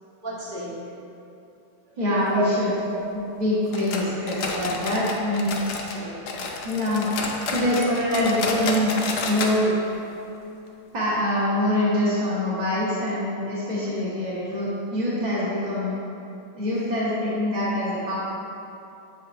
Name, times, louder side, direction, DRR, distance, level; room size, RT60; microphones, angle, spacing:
voice 1, 0.2-0.9 1.9-2.0 2.3-2.4 2.9-3.0 4.0-4.1 5.4-5.5 5.9-6.6 7.6-8.2, right 1 dB, 25° right, -10 dB, 1.4 m, -34 dB
voice 2, 2.0-2.7 3.4-5.5 6.6-7.1 7.5-8.9 9.2-9.7 10.9-15.9 16.5-18.1, left 1 dB, 45° right, -9 dB, 0.5 m, -24 dB
sound 1, 3.7-6.0 6.3-9.6 9.9-10.0 10.3-10.4 11.0-11.1, left 3 dB, 85° left, 0.9 m, -30 dB
7.5 x 5.7 x 2.5 m, 2.8 s
omnidirectional pair, 2.4 m